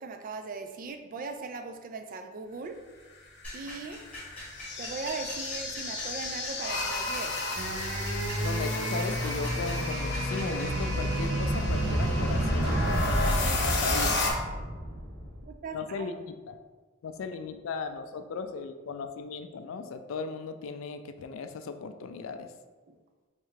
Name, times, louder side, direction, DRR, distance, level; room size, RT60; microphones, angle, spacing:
voice 1, 0.0-2.8 3.5-4.0 4.8-7.4 15.4-16.1 22.9-23.0, right 4 dB, 45° right, 6 dB, 0.3 m, -39 dB
sound 1, 3.4-14.3, left 2 dB, 60° left, 0.7 m, -34 dB
sound 2, 3.4-10.8, left 1 dB, 5° left, 1.2 m, -45 dB
sound 3, 7.5-15.4, right 1 dB, 80° right, 0.9 m, -30 dB
voice 2, 8.4-14.2 15.7-16.6 17.0-22.5, left 5 dB, 80° left, 8 dB, 0.3 m, -37 dB
3.6 x 3.2 x 3.2 m, 1.3 s
head